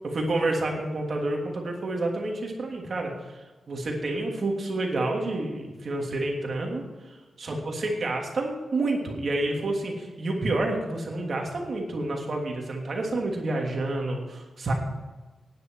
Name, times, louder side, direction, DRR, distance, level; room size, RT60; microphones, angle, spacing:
voice 1, 0.0-14.7, right 2 dB, 55° right, 0 dB, 3.0 m, -29 dB
17.5 x 10.0 x 4.7 m, 1.2 s
cardioid pair, 85°, 0 cm